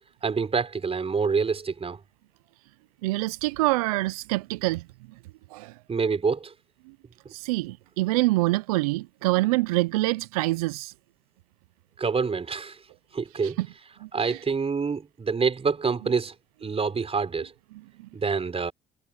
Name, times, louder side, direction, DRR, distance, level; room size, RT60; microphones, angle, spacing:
voice 1, 0.2-2.0 5.9-6.5 12.0-12.8 13.1-13.6 14.1-16.3 16.6-17.5 18.1-18.7, right 5 dB, 35° right, 4.6 m, -26 dB
voice 2, 3.0-4.9 5.5-5.7 7.3-10.9 13.4-13.7 14.0-14.4, right 20 dB, 90° right, 0.5 m, -26 dB
hypercardioid pair, 65°, 18 cm